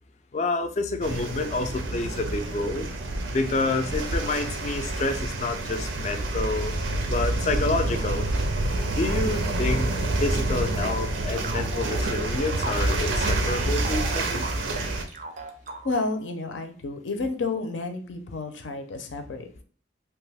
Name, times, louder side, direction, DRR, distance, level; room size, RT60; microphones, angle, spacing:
voice 1, 0.3-2.9 3.3-6.7 7.1-8.3 9.0-9.9 10.2-14.5, left 3 dB, 35° left, 8 dB, 0.3 m, -28 dB
sound 1, 1.0-15.0, right 2 dB, 90° right, 0.5 m, -28 dB
sound 2, 10.8-16.2, right 3 dB, 40° right, 0.4 m, -38 dB
voice 2, 15.8-19.6, left 3 dB, 80° left, 6 dB, 0.5 m, -31 dB
2.9 x 2.3 x 3.3 m, 0.43 s
head